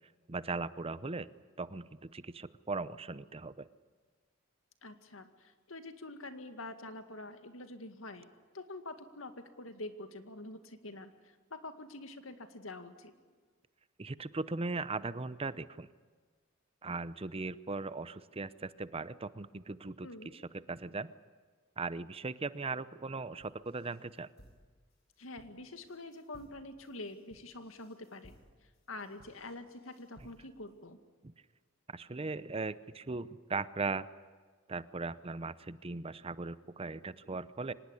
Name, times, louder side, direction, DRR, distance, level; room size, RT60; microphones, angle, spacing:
voice 1, 0.3-1.3 1.6-3.7 14.0-15.9 16.8-20.1 20.3-20.4 20.7-21.1 21.8-24.3 31.2-31.3 31.9-34.1 34.7-37.7, right 3 dB, 30° right, 15 dB, 0.7 m, -38 dB
voice 2, 4.8-9.3 9.6-11.1 11.5-13.1 20.0-20.3 25.2-28.3 28.9-31.0, left 2 dB, 90° left, 8 dB, 2.1 m, -46 dB
sound 1, 23.4-30.7, equal, 55° left, 6.0 m, -62 dB
25.0 x 19.5 x 9.9 m, 1.5 s
head